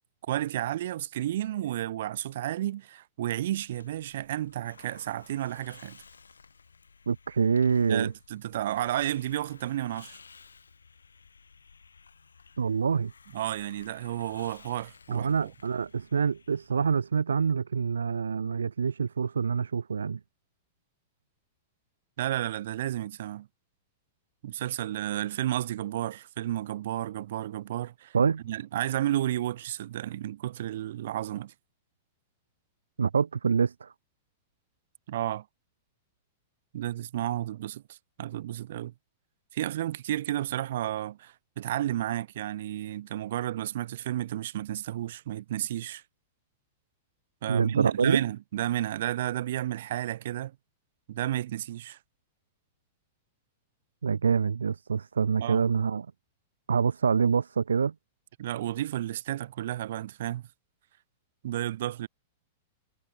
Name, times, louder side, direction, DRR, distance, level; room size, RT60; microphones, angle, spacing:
voice 1, 0.3-6.0 7.9-10.2 13.3-15.5 22.2-23.5 24.4-28.2 28.4-31.5 35.1-35.4 36.7-38.9 39.5-46.0 47.4-50.6 51.1-52.0 55.4-55.7 58.4-60.4 61.4-62.1, right 13 dB, 55° right, 3.3 m, -32 dB
Hiss, 3.6-17.1, left 5 dB, 75° left, 6.5 m, -55 dB
voice 2, 7.1-8.1 12.6-13.1 15.1-20.2 28.1-28.4 33.0-33.9 47.5-48.2 54.0-56.1 56.7-57.9, right 6 dB, 75° right, 0.3 m, -26 dB
figure-of-eight pair, 100°, 0 cm